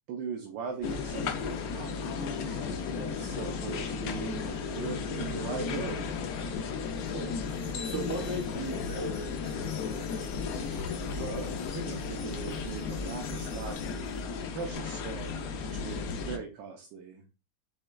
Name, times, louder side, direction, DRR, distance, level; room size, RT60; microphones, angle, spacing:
voice 1, 0.1-2.6 3.0-6.2 11.1-17.2, right 6 dB, 75° right, 2 dB, 1.4 m, -40 dB
sound 1, 0.7-15.9, left 1 dB, 20° left, 1.5 m, -52 dB
sound 2, 0.8-16.4, left 5 dB, 65° left, 0.9 m, -34 dB
voice 2, 7.1-10.8, right 1 dB, 55° right, -2 dB, 2.8 m, -39 dB
sound 3, 7.6-14.4, left 6 dB, 90° left, 1.6 m, -52 dB
6.3 x 3.5 x 2.2 m, 0.30 s
omnidirectional pair, 2.0 m